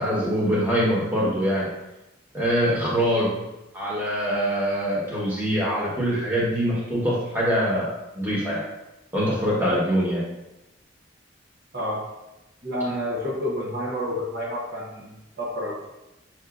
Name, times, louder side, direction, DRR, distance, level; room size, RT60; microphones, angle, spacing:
voice 1, 0.0-1.7 2.3-3.3 3.7-7.9 8.1-8.6 9.1-10.2, equal, 10° right, -7 dB, 1.1 m, -23 dB
voice 2, 12.6-15.9, equal, 55° right, -4 dB, 0.8 m, -29 dB
5.9 x 2.6 x 2.4 m, 0.96 s
head